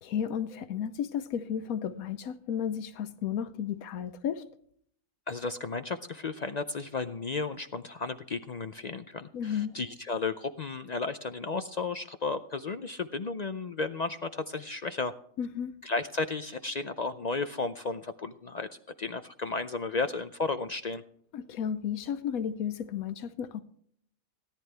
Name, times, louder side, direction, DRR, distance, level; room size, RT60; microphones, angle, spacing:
voice 1, 0.0-4.4 9.3-9.8 15.4-15.7 21.3-23.6, left 8 dB, 85° left, 10 dB, 1.2 m, -33 dB
voice 2, 5.3-15.1 15.8-18.7 19.0-21.0, left 3 dB, 65° left, 10 dB, 0.4 m, -33 dB
17.5 x 10.5 x 3.4 m, 0.63 s
omnidirectional pair, 1.5 m